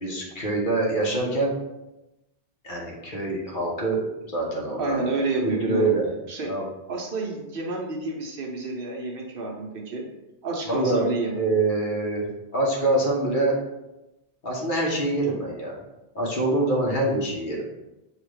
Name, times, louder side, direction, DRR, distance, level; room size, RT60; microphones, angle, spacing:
voice 1, 0.0-1.5 2.6-5.1 5.4-6.1 6.4-6.6 10.7-11.1 11.4-12.3 12.5-13.5 14.4-15.8 16.1-17.6, right 2 dB, 50° left, -3 dB, 1.1 m, -25 dB
voice 2, 4.8-5.9 6.3-6.5 6.9-10.0 10.4-11.4, right 3 dB, 60° right, 0 dB, 0.9 m, -29 dB
5.6 x 2.4 x 3.2 m, 0.98 s
omnidirectional pair, 1.1 m